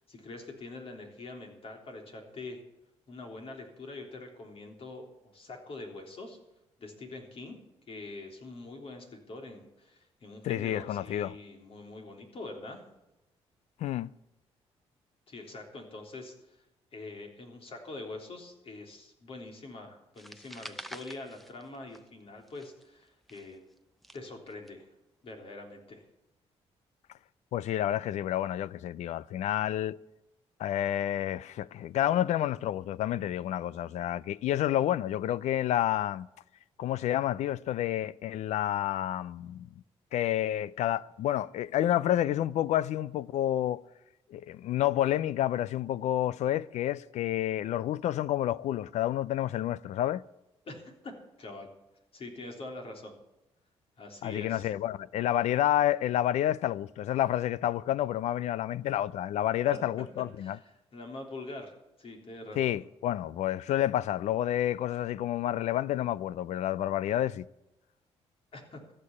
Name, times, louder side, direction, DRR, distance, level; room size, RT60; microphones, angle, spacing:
voice 1, 0.1-2.6 3.1-6.4 6.8-7.6 7.9-12.8 15.3-16.6 16.9-23.6 24.1-24.9 25.2-26.0 50.6-51.1 51.4-51.7 52.1-53.1 54.0-54.7 59.6-59.8 60.4-62.7 68.5-68.8, left 2 dB, 55° left, 3.5 m, -44 dB
voice 2, 10.4-11.4 13.8-14.1 27.5-30.0 30.6-36.3 36.8-39.7 40.1-43.8 44.3-50.2 54.2-60.6 62.6-67.5, left 12 dB, 75° left, 0.4 m, -29 dB
sound 1, 20.2-22.2 22.5-24.7, equal, ahead, 0.8 m, -47 dB
14.5 x 6.7 x 9.7 m
cardioid pair, 80°, 12 cm